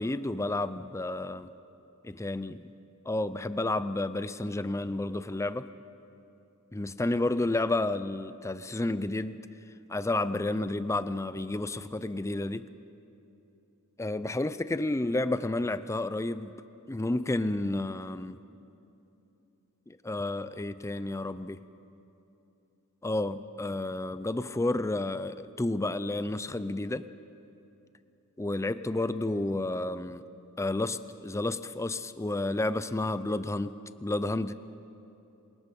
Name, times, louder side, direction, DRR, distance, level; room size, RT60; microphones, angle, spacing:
voice 1, 0.0-1.5 2.0-2.7 3.1-5.7 6.7-9.4 9.9-12.7 14.0-16.5 16.9-18.4 19.9-21.6 23.0-27.1 28.4-30.2 30.6-34.5, left 2 dB, 15° left, 13 dB, 0.5 m, -31 dB
27.0 x 20.5 x 5.4 m, 2.8 s
head